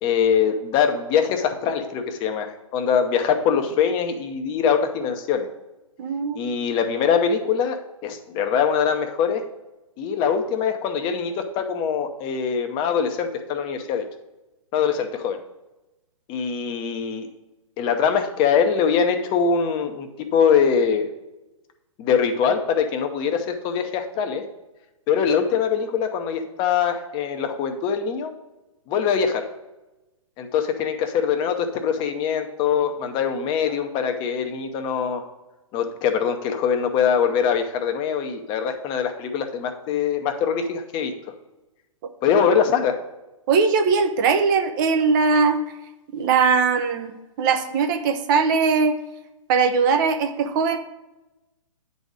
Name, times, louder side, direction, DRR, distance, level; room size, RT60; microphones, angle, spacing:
voice 1, 0.0-5.5 6.3-9.4 10.0-14.0 14.7-15.4 16.3-17.3 17.8-21.1 22.0-24.4 25.1-28.3 28.9-29.4 30.4-35.2 35.7-41.1 42.2-43.0, left 7 dB, 30° left, 6 dB, 0.9 m, -23 dB
voice 2, 6.0-6.4 43.5-45.6 46.1-47.1 47.4-49.0 49.5-50.8, right 5 dB, 40° right, 7 dB, 0.8 m, -20 dB
9.0 x 4.2 x 4.9 m, 1.0 s
figure-of-eight pair, 125°, 17 cm